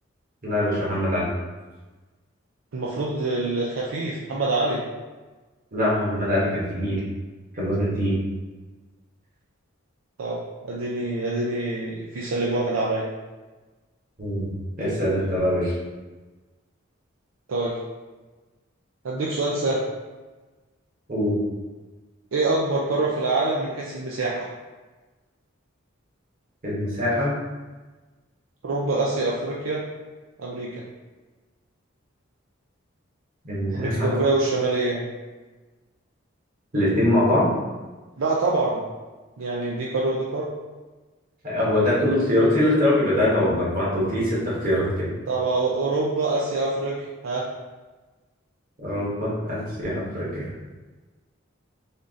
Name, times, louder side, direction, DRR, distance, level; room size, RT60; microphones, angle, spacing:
voice 1, 0.4-1.2 5.7-7.0 7.5-8.2 14.2-14.5 14.8-15.7 21.1-21.4 26.6-27.3 33.4-34.1 36.7-37.6 41.4-45.1 48.8-50.5, left 1 dB, 45° right, -7 dB, 1.5 m, -23 dB
voice 2, 2.7-4.8 10.2-13.1 17.5-17.8 19.0-19.8 22.3-24.5 28.6-29.8 30.4-30.8 33.7-35.1 38.2-38.8 39.4-40.5 45.3-47.5, right 2 dB, 75° right, -4 dB, 0.5 m, -25 dB
3.5 x 2.6 x 3.7 m, 1.2 s
head